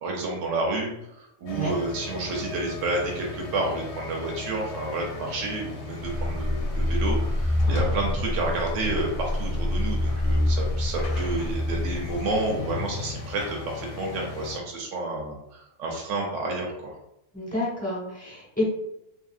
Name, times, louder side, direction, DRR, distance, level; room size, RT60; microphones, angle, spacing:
voice 1, 0.0-16.9, right 2 dB, 85° right, -1 dB, 1.0 m, -30 dB
sound 1, 1.5-14.6, left 3 dB, 70° left, 0.8 m, -36 dB
sound 2, 6.0-12.5, left 1 dB, 50° right, 0.3 m, -27 dB
voice 2, 17.3-18.7, left 1 dB, 5° left, -6 dB, 0.9 m, -29 dB
2.8 x 2.6 x 2.4 m, 0.83 s
omnidirectional pair, 1.3 m